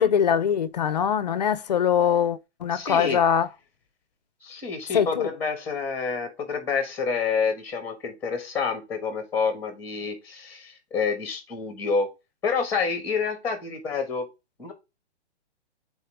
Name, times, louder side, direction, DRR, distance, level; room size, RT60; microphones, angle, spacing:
voice 1, 0.0-3.5 4.9-5.3, left 8 dB, 40° left, 0.5 m, -22 dB
voice 2, 2.7-3.2 4.4-12.1 12.4-14.3 14.6-14.7, left 5 dB, 5° left, 1.4 m, -28 dB
8.2 x 4.3 x 3.3 m
hypercardioid pair, 170°, 35 cm